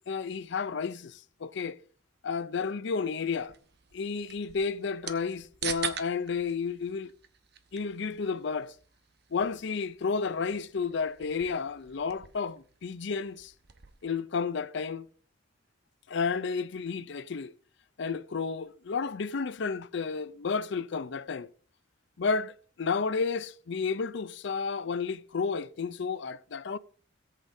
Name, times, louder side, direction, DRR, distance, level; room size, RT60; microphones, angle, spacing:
voice 1, 0.1-1.8 2.2-3.5 3.9-7.1 7.7-8.7 9.3-13.5 14.0-15.1 16.1-17.5 18.0-21.5 22.2-26.8, left 5 dB, 65° left, 0.5 m, -32 dB
sound 1, 3.4-14.1, right 8 dB, 60° right, 1.0 m, -44 dB
17.5 x 8.3 x 2.7 m
head